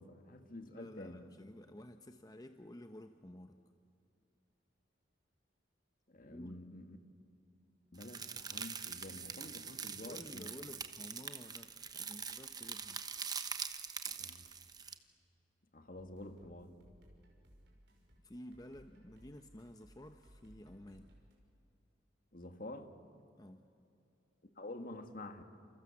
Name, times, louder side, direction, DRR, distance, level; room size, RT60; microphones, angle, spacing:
voice 1, 0.0-1.2 6.1-7.0 7.9-10.5 14.1-14.5 15.7-16.7 22.3-22.9 24.6-25.4, left 1 dB, 50° left, 7 dB, 1.8 m, -49 dB
voice 2, 0.7-3.6 6.3-6.6 10.0-13.0 18.2-21.2 23.4-23.7, left 1 dB, 20° left, 7 dB, 0.8 m, -52 dB
sound 1, 8.0-14.9, right 6 dB, 20° right, 1.1 m, -44 dB
sound 2, 16.0-21.3, equal, 70° right, 5.9 m, -63 dB
29.0 x 28.5 x 7.2 m, 2.6 s
head